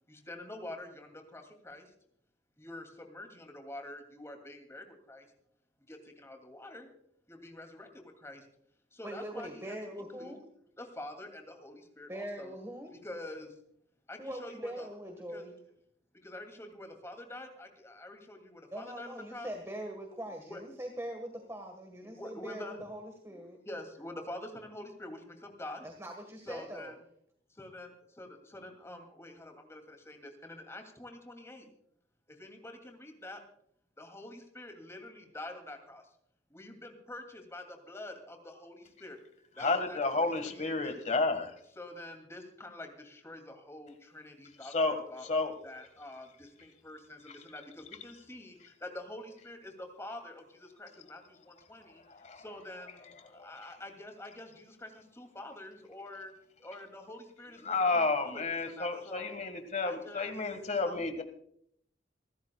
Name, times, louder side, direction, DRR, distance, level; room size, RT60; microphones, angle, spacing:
voice 1, 0.1-1.9 2.6-5.3 5.9-6.9 7.3-8.5 8.9-10.3 10.8-12.5 13.0-13.6 14.1-14.9 15.3-15.5 16.2-19.5 20.4-20.6 22.0-22.8 23.3-25.9 26.5-26.9 27.5-31.7 32.3-33.4 34.0-36.0 36.5-39.2 39.6-41.0 41.7-45.3 45.6-52.0 52.3-56.3 56.6-59.3 59.8-60.4 60.7-61.1, left 1 dB, 15° left, 4 dB, 2.6 m, -47 dB
voice 2, 9.0-10.4 12.1-12.9 14.2-15.5 18.7-23.6 25.8-26.9, right 1 dB, 15° right, 4 dB, 1.5 m, -42 dB
voice 3, 39.6-41.5 44.7-45.0 45.3-45.5 52.2-52.4 57.7-61.2, left 3 dB, 40° left, 8 dB, 1.7 m, -31 dB
26.5 x 13.5 x 2.4 m, 0.69 s
head